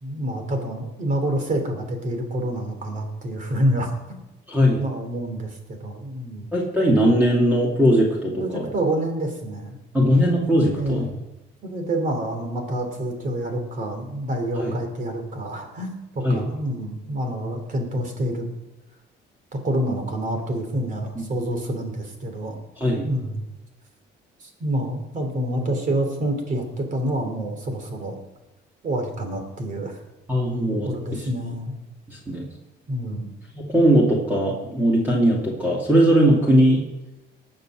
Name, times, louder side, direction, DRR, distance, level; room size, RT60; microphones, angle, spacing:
voice 1, 0.0-4.2 4.8-6.5 8.3-9.8 10.7-11.1 11.6-18.5 19.6-22.6 23.0-23.5 24.4-28.2 28.8-30.0 30.8-31.7 32.9-33.3, right 1 dB, 40° right, 5 dB, 3.2 m, -27 dB
voice 2, 4.5-4.8 6.5-8.7 9.9-11.1 14.6-14.7 16.2-16.5 21.2-21.3 22.8-23.1 30.3-31.2 32.1-32.4 33.5-36.8, equal, 10° right, -4 dB, 2.6 m, -19 dB
19.5 x 6.7 x 6.4 m, 1.0 s
cardioid pair, 135°, 20 cm